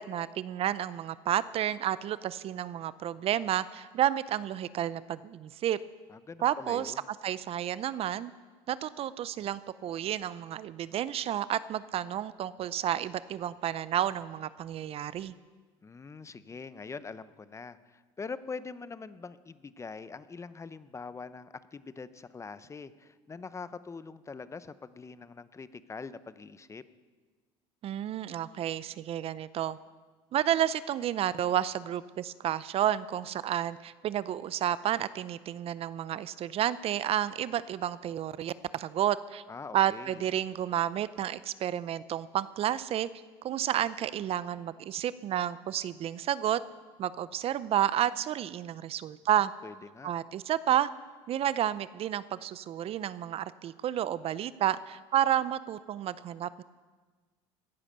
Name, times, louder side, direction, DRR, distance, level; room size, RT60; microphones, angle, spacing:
voice 1, 0.0-5.8 6.4-6.9 7.2-8.3 8.7-15.3 27.8-29.8 30.3-39.4 39.7-43.1 43.4-46.6 47.0-49.5 50.0-50.9 51.3-56.6, right 11 dB, 50° right, 17 dB, 0.5 m, -31 dB
voice 2, 6.1-7.0 15.8-26.8 39.5-40.2 49.6-50.1, left 4 dB, 20° left, 14 dB, 0.7 m, -43 dB
16.5 x 9.8 x 6.7 m, 1.4 s
supercardioid pair, 90°, 13 cm